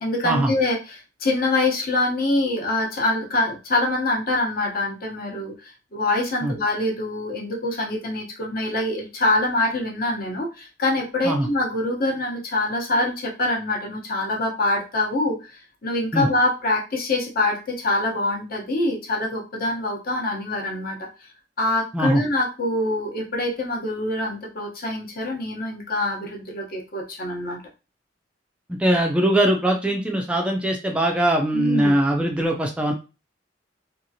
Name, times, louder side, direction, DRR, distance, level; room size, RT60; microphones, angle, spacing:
voice 1, 0.0-21.1 21.6-27.6 31.5-31.9, left 2 dB, 50° left, 0 dB, 0.8 m, -25 dB
voice 2, 28.8-32.9, right 1 dB, 5° right, 1 dB, 0.3 m, -21 dB
2.8 x 2.4 x 2.6 m, 0.30 s
head